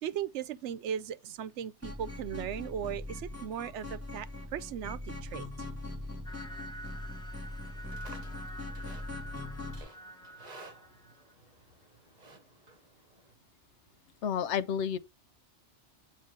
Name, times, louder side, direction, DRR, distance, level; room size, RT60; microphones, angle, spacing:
voice 1, 0.0-5.5, right 9 dB, 80° right, 0.9 m, -37 dB
sound 1, 1.8-9.8, left 1 dB, 15° right, 1.7 m, -41 dB
sound 2, 6.2-11.3, right 1 dB, 5° left, 1.0 m, -48 dB
Livestock farm animals working animals, 7.6-13.3, right 3 dB, 40° right, 1.2 m, -55 dB
voice 2, 14.2-15.0, left 8 dB, 80° left, 1.0 m, -30 dB
8.7 x 3.1 x 5.2 m
omnidirectional pair, 1.2 m